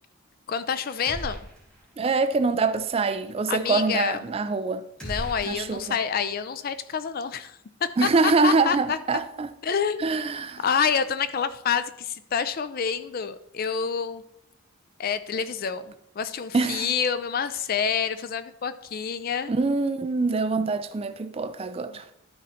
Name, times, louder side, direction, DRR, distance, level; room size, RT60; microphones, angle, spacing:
voice 1, 0.5-1.4 3.5-4.2 5.0-9.0 9.6-10.1 10.6-14.2 15.0-15.9 16.2-19.5 21.9-22.2, left 6 dB, 45° left, 0.4 m, -28 dB
sound 1, 1.0-1.9 2.2-2.3 5.0-6.3, right 1 dB, 5° left, 2.3 m, -38 dB
voice 2, 2.0-4.8 5.5-6.0 8.0-9.5 10.0-10.6 16.5-16.9 19.5-22.1, right 4 dB, 25° right, 0.3 m, -24 dB
12.0 x 4.2 x 4.3 m
head